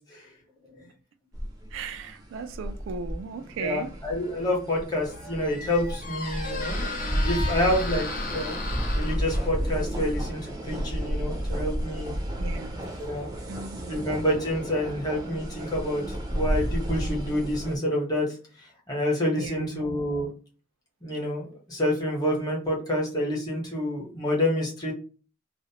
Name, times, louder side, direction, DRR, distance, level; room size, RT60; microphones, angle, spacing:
sound 1, 1.3-17.8, equal, 20° right, 0.5 m, -32 dB
voice 1, 1.7-3.9 12.4-12.8 13.5-14.0 19.3-19.8, right 5 dB, 85° right, 0.3 m, -36 dB
voice 2, 3.6-8.5 8.9-12.1 13.0-13.3 13.9-16.0 16.3-18.3 18.9-20.3 21.0-24.9, left 1 dB, 20° left, 0.9 m, -28 dB
Squeak, 4.8-13.5, left 3 dB, 45° left, 0.6 m, -37 dB
2.5 x 2.0 x 2.8 m
head